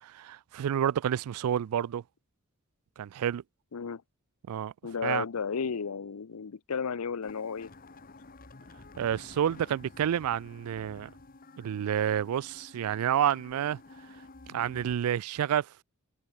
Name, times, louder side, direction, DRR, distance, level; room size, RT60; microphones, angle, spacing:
voice 1, 0.0-2.0 3.0-3.4 4.5-4.7 5.0-5.2 9.0-11.1 11.6-13.8 14.5-15.8, right 9 dB, 90° right, 0.3 m, -29 dB
voice 2, 4.8-7.7, left 6 dB, 90° left, 0.6 m, -33 dB
sound 1, 7.2-14.9, left 2 dB, 40° left, 1.2 m, -51 dB
open air
head